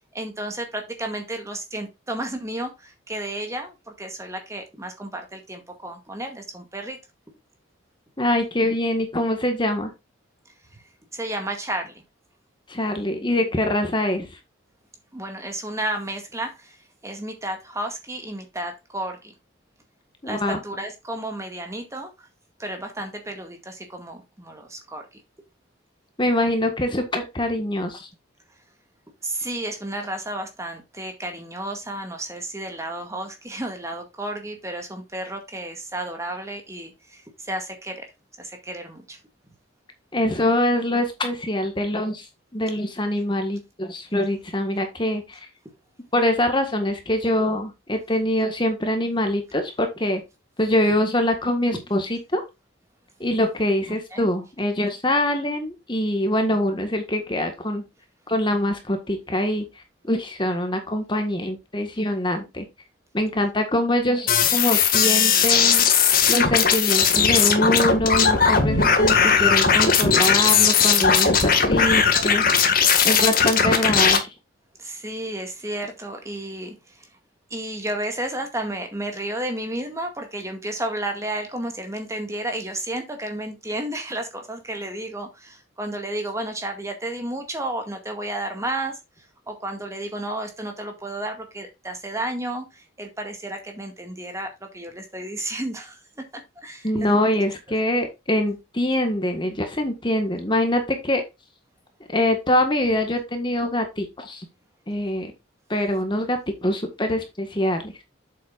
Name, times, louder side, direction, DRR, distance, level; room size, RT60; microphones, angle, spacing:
voice 1, 0.1-7.0 11.1-12.0 15.1-16.8 17.0-19.3 20.2-22.3 22.6-25.1 29.2-38.1 38.4-39.2 51.7-51.8 54.1-54.3 74.8-77.1 77.5-89.0 89.5-96.0 96.3-97.3, right 1 dB, 15° right, 4 dB, 2.0 m, -32 dB
voice 2, 8.2-9.9 12.7-14.3 20.2-20.6 26.2-28.1 40.1-42.3 42.5-45.5 46.1-50.2 50.6-52.4 53.2-57.8 58.3-62.6 63.1-65.9 66.3-72.4 73.0-74.3 96.8-101.2 102.1-104.4 104.9-105.3 105.7-107.9, left 1 dB, 25° left, 5 dB, 1.6 m, -24 dB
sound 1, 64.3-74.2, left 6 dB, 45° left, 2.0 m, -18 dB
8.4 x 7.8 x 2.5 m, 0.24 s
head